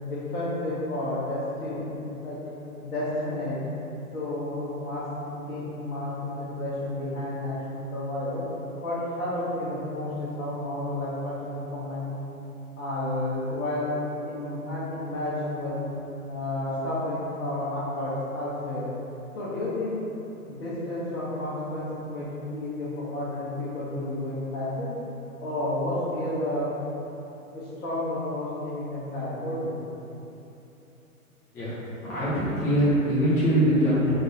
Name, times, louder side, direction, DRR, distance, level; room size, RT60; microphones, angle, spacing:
voice 1, 0.0-2.4 2.8-3.6 4.1-5.0 5.5-8.4 8.8-12.1 12.8-13.9 14.2-15.8 16.3-18.9 19.3-20.0 20.5-24.9 25.4-26.7 27.5-29.9, left 1 dB, 70° left, -11 dB, 1.3 m, -31 dB
voice 2, 31.5-34.1, equal, 5° left, -12 dB, 0.6 m, -23 dB
3.9 x 2.5 x 4.1 m, 2.9 s
figure-of-eight pair, 130°, 44 cm